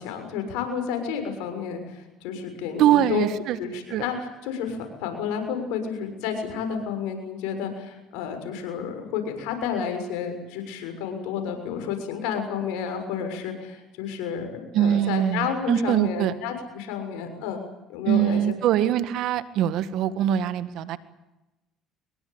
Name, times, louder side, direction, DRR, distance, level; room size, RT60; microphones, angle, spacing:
voice 1, 0.0-3.3 3.6-17.6 17.9-18.4 18.7-18.8, left 7 dB, 80° left, 6 dB, 6.6 m, -31 dB
voice 2, 2.8-3.6 3.9-4.0 14.7-16.3 18.1-21.0, right 11 dB, 65° right, 13 dB, 1.8 m, -22 dB
24.5 x 22.0 x 8.9 m, 1.0 s
supercardioid pair, 85°, 0 cm